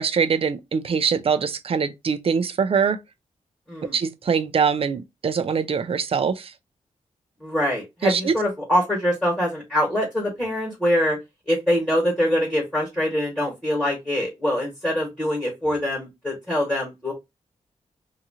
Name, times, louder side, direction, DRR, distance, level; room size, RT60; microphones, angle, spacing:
voice 1, 0.0-3.0 3.9-6.5 8.0-8.3, right 6 dB, 50° right, 0.4 m, -23 dB
voice 2, 3.7-4.0 7.4-11.2 11.5-17.1, equal, 5° left, 1.4 m, -24 dB
2.8 x 2.4 x 2.7 m
wide cardioid pair, 120°, 13 cm